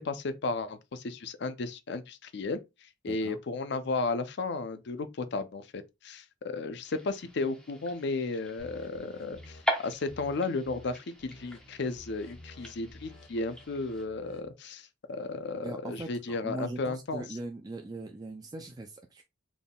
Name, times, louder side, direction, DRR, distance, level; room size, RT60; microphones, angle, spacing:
voice 1, 0.1-2.6 3.0-17.2, left 3 dB, 60° left, 0.5 m, -34 dB
voice 2, 3.1-3.4 15.5-19.2, right 2 dB, 20° right, 0.4 m, -40 dB
sound 1, 6.8-14.1, left 1 dB, 5° left, 0.8 m, -40 dB
sound 2, 8.6-9.6 10.1-10.4 10.6-10.9 11.2-14.5, left 1 dB, 80° left, 0.9 m, -52 dB
4.1 x 3.5 x 2.3 m
head